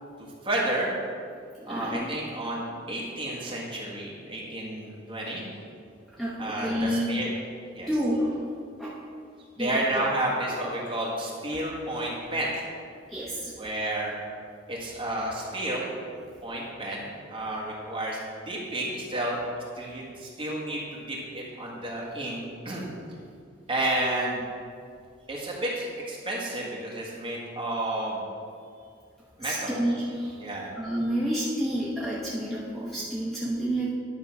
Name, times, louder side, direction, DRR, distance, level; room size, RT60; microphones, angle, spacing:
voice 1, 0.4-0.9 1.6-5.4 6.4-7.3 7.7-7.9 9.6-12.5 13.6-14.1 14.7-15.9 16.4-19.4 19.7-22.9 23.7-24.4 25.3-28.2 29.4-29.8 30.4-30.7, right 1 dB, 25° right, -5 dB, 1.6 m, -31 dB
voice 2, 1.7-2.2 6.2-7.1 7.9-8.4 8.8-8.9 9.6-9.7 13.1-13.5 29.4-30.4 30.8-33.9, equal, ahead, -7 dB, 0.8 m, -29 dB
10.5 x 3.7 x 5.9 m, 2.3 s
head